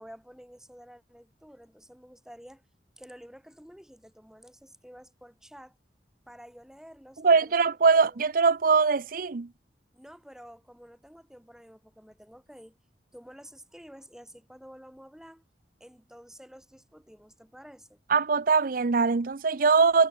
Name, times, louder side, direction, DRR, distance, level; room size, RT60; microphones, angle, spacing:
voice 1, 0.0-2.6 3.0-5.8 6.3-7.4 8.1-8.2 9.9-12.8 13.1-15.4 15.8-18.0, equal, 5° right, 4.9 m, -50 dB
voice 2, 7.2-9.5 18.1-20.1, right 5 dB, 50° right, 0.5 m, -22 dB
head